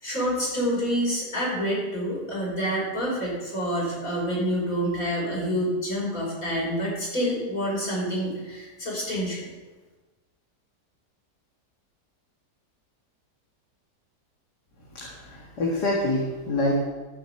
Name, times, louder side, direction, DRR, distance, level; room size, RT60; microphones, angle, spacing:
voice 1, 0.0-9.5, equal, 50° left, -5 dB, 5.8 m, -27 dB
voice 2, 14.9-16.8, left 1 dB, 70° left, -3 dB, 2.4 m, -26 dB
14.0 x 6.2 x 8.0 m, 1.2 s
omnidirectional pair, 1.8 m